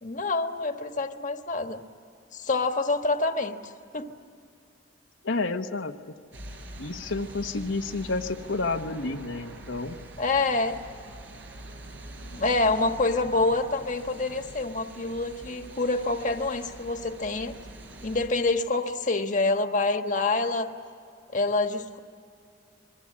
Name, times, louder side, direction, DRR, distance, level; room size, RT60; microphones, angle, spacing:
voice 1, 0.0-1.8 2.3-4.1 10.2-10.8 12.3-17.5 18.0-20.7 21.3-22.0, left 3 dB, 40° left, 6 dB, 1.4 m, -27 dB
voice 2, 5.2-5.9 6.8-10.0, left 3 dB, 90° left, 4 dB, 1.1 m, -30 dB
sound 1, 6.3-18.3, right 1 dB, 70° right, 4.6 m, -44 dB
27.0 x 22.0 x 8.6 m, 2.4 s
head